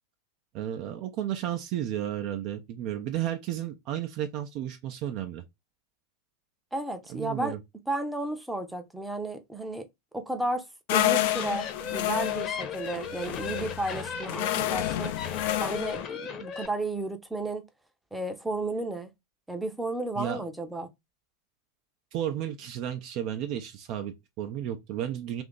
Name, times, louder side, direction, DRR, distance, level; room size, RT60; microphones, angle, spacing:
voice 1, 0.5-5.4 7.1-7.6 20.2-20.4 22.1-25.4, right 11 dB, 45° right, 0.5 m, -33 dB
voice 2, 6.7-7.6 7.9-9.9 10.1-10.6 10.9-15.1 15.6-17.6 18.1-19.1 19.5-20.9, right 2 dB, 5° right, 0.6 m, -33 dB
sound 1, 10.9-16.1, left 13 dB, 55° left, 0.4 m, -29 dB
sound 2, 10.9-16.7, left 6 dB, 35° left, 0.8 m, -37 dB
2.8 x 2.5 x 3.7 m
figure-of-eight pair, 90°, 0 cm